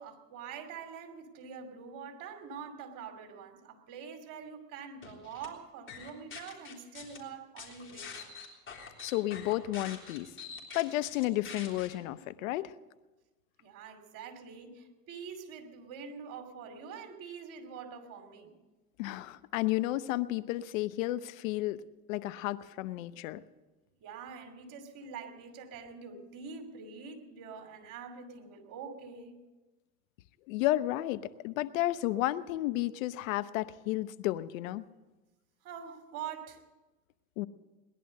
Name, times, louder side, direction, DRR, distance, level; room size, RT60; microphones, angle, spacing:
voice 1, 0.0-8.2 13.6-18.5 24.0-29.3 35.6-36.6, right 6 dB, 50° right, 6 dB, 2.8 m, -45 dB
sound 1, 5.0-5.5 5.9-7.2 7.6-11.9, left 6 dB, 30° left, 3.5 m, -45 dB
voice 2, 9.0-10.3 10.7-12.7 19.0-21.8 22.1-23.4 30.5-34.8 37.4-37.5, left 16 dB, 70° left, 14 dB, 0.9 m, -32 dB
19.5 x 11.0 x 6.6 m, 1.2 s
hypercardioid pair, 90°, 41 cm